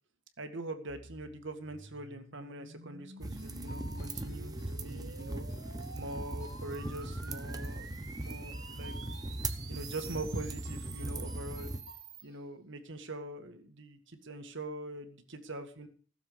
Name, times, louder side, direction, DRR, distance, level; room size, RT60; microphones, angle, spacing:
voice 1, 0.4-5.5 5.9-9.0 9.7-11.7 12.2-15.9, right 2 dB, 65° right, 7 dB, 1.9 m, -43 dB
sound 1, 0.9-12.2, right 5 dB, 85° right, 1.9 m, -51 dB
sound 2, 3.2-11.8, right 2 dB, 20° right, 1.0 m, -39 dB
sound 3, 3.4-12.4, left 1 dB, 50° left, 2.6 m, -57 dB
16.5 x 7.1 x 7.1 m, 0.43 s
head